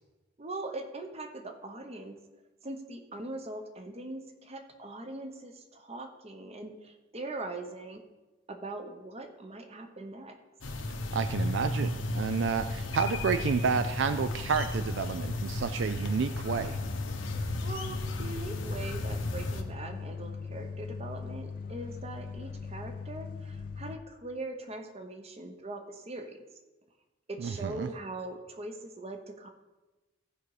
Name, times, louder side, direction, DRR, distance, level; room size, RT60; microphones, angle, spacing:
voice 1, 0.4-2.2 2.6-8.0 8.5-10.4 17.6-26.4 27.3-29.5, right 2 dB, 35° right, 6 dB, 0.9 m, -41 dB
sound 1, 10.6-19.6, left 1 dB, 90° left, 1.1 m, -35 dB
voice 2, 11.1-16.8 27.4-27.9, right 5 dB, 65° right, 10 dB, 0.4 m, -30 dB
sound 2, 11.4-24.0, left 5 dB, 45° left, 0.4 m, -40 dB
15.5 x 5.2 x 4.9 m, 1.2 s
head